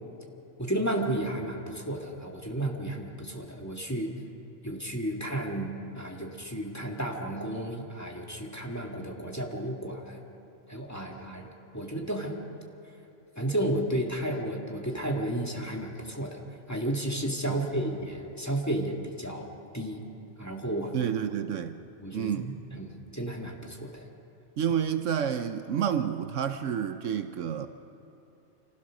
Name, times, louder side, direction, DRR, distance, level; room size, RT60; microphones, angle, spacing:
voice 1, 0.6-4.1 4.6-10.2 10.7-11.5 11.7-12.4 13.4-16.4 16.7-19.5 19.7-20.0 20.4-20.9 22.0-24.1, right 1 dB, 10° left, 1.9 m, -32 dB
voice 2, 20.9-21.8 22.1-22.5 24.6-27.7, right 8 dB, 70° right, 1.0 m, -29 dB
26.0 x 16.0 x 6.3 m
omnidirectional pair, 1.4 m